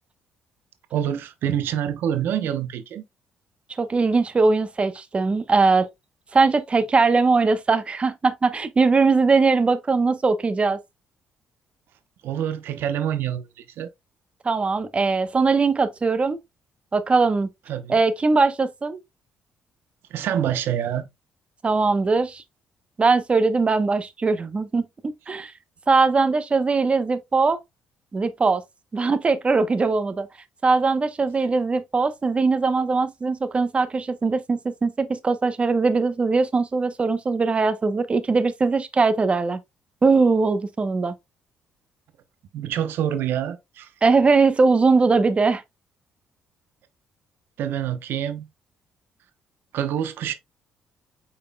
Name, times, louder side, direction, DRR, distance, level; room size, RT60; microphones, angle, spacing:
voice 1, 0.9-3.0 12.2-13.9 17.7-18.0 20.1-21.1 42.5-43.9 47.6-48.5 49.7-50.3, right 10 dB, 75° right, 0.8 m, -26 dB
voice 2, 3.8-5.9 6.3-10.8 14.4-16.4 16.9-17.5 17.9-19.0 21.6-22.4 23.0-25.5 25.9-27.6 28.1-28.6 28.9-30.3 30.6-39.6 40.0-41.1 44.0-45.6, right 4 dB, 30° right, 0.8 m, -20 dB
5.5 x 4.2 x 2.2 m
supercardioid pair, 65°, 4 cm